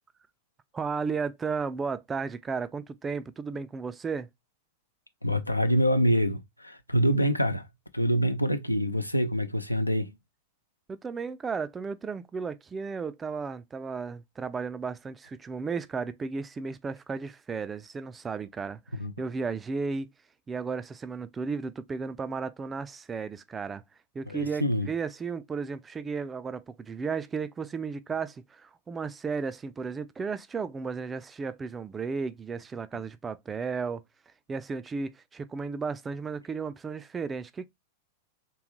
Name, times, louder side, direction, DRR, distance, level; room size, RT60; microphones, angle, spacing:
voice 1, 0.7-4.3 10.9-18.8 19.2-20.1 20.5-23.8 24.1-34.0 34.5-37.7, right 5 dB, 15° right, 0.3 m, -34 dB
voice 2, 5.2-7.6 7.9-10.1 19.0-19.1 24.3-24.9, equal, 85° left, 0.4 m, -25 dB
3.4 x 3.0 x 3.0 m
figure-of-eight pair, 90°, 0 cm